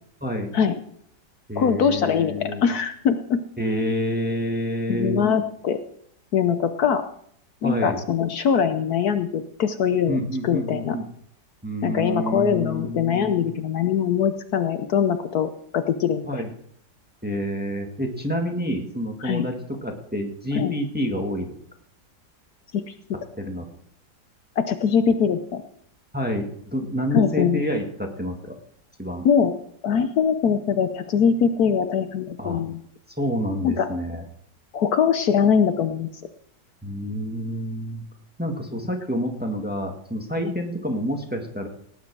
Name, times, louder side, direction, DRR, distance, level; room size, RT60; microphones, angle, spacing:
voice 1, 0.2-0.5 1.5-2.6 3.6-5.2 7.6-8.0 10.1-11.1 11.6-13.5 16.2-16.5 17.2-21.6 23.1-23.7 26.1-28.5 29.0-29.3 32.4-32.6 33.2-34.2 36.8-38.0 38.4-41.7, equal, 5° right, 2 dB, 1.6 m, -28 dB
voice 2, 1.6-3.4 4.9-5.8 6.3-7.0 7.6-11.0 11.8-16.3 19.2-19.5 20.5-20.7 22.7-22.8 24.6-25.6 27.1-27.6 29.2-29.5 29.8-32.8 33.6-33.9 34.7-36.1 40.4-40.5, left 7 dB, 65° left, 9 dB, 1.3 m, -22 dB
18.0 x 9.8 x 4.7 m, 0.67 s
omnidirectional pair, 1.8 m